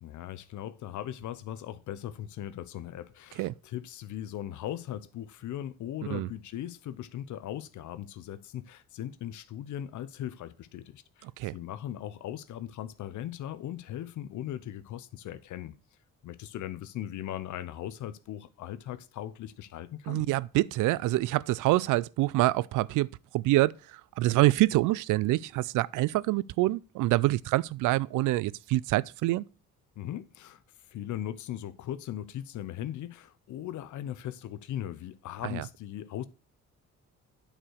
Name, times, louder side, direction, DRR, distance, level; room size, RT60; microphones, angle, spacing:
voice 1, 0.0-15.8 16.2-20.2 30.0-30.6 30.9-36.3, left 11 dB, 75° left, 0.8 m, -39 dB
voice 2, 20.1-23.1 23.3-23.7 24.2-29.4 35.4-35.6, right 18 dB, 90° right, 0.5 m, -26 dB
9.0 x 4.8 x 6.3 m
cardioid pair, 90°, 30 cm